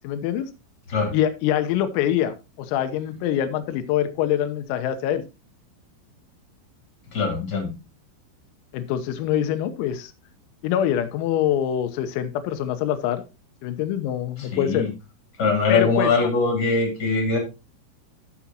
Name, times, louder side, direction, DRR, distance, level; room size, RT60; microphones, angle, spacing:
voice 1, 0.0-0.5 1.1-5.2 8.7-10.1 10.6-13.2 13.6-14.9 15.7-16.3, left 10 dB, 90° left, 11 dB, 3.7 m, -24 dB
voice 2, 7.1-7.7 14.5-14.9 15.4-17.4, left 4 dB, 25° left, 1 dB, 2.9 m, -22 dB
14.0 x 7.3 x 2.9 m, 0.26 s
omnidirectional pair, 5.9 m